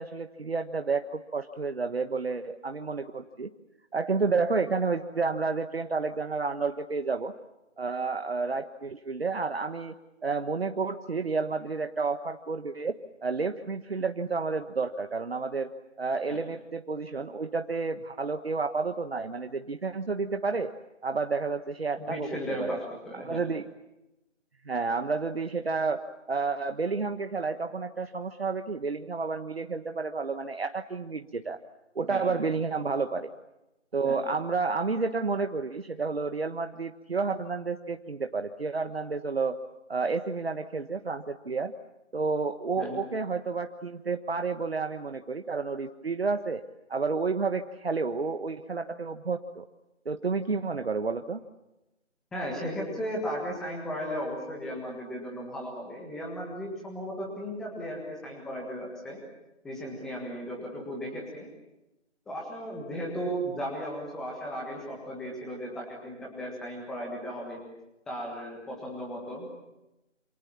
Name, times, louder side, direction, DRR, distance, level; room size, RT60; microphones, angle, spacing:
voice 1, 0.0-3.5 3.9-7.3 7.8-9.9 10.2-13.0 13.2-15.7 16.0-20.7 21.0-22.8 23.1-23.7 24.6-31.6 31.9-33.3 33.9-39.6 39.9-41.7 42.1-46.6 46.9-49.7 50.0-51.4, right 4 dB, 50° right, 7 dB, 1.4 m, -30 dB
voice 2, 22.0-23.4 32.1-32.3 34.0-34.2 42.7-43.0 52.3-59.2 59.6-61.5 62.3-67.6 68.1-69.6, equal, ahead, -1 dB, 1.6 m, -36 dB
28.0 x 27.0 x 7.2 m, 0.95 s
figure-of-eight pair, 165°, 37 cm